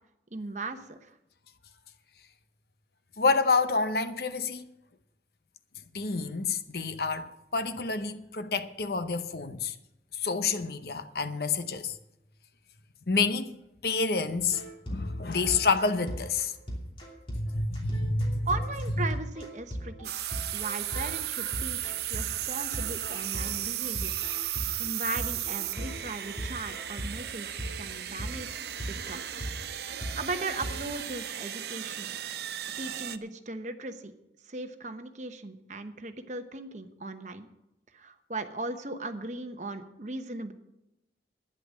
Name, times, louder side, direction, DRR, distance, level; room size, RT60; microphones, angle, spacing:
voice 1, 0.3-1.1 18.5-20.1 20.5-24.1 24.8-28.6 28.9-29.3 30.2-32.1 32.8-34.1 34.5-37.5 37.9-40.5, right 2 dB, 40° right, 1.0 m, -37 dB
voice 2, 3.2-4.7 5.9-9.7 10.1-12.0 13.1-13.5 13.8-14.6 14.9-16.5 17.3-18.5, left 4 dB, 60° left, 0.8 m, -28 dB
sound 1, 14.4-31.2, equal, 30° left, 2.8 m, -39 dB
sound 2, 20.0-33.2, right 12 dB, 65° right, 0.6 m, -35 dB
11.5 x 9.8 x 6.4 m
head